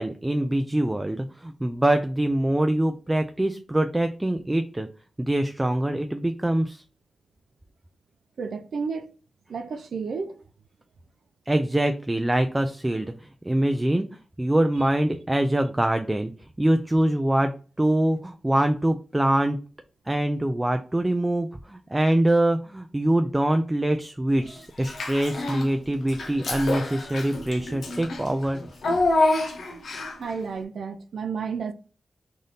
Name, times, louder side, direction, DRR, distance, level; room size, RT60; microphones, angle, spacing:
voice 1, 0.0-4.9 5.2-6.8 11.5-14.0 14.4-16.3 16.6-17.5 17.8-19.6 20.1-28.6, right 1 dB, 15° right, 0.3 m, -24 dB
voice 2, 8.4-9.1 9.5-10.4 30.2-31.7, right 5 dB, 85° right, 0.4 m, -31 dB
Child speech kid speaking / Bathtub (filling or washing), 24.8-25.7 26.1-30.3, left 2 dB, 80° left, 0.9 m, -27 dB
3.3 x 2.7 x 3.9 m
wide cardioid pair, 90°, 0 cm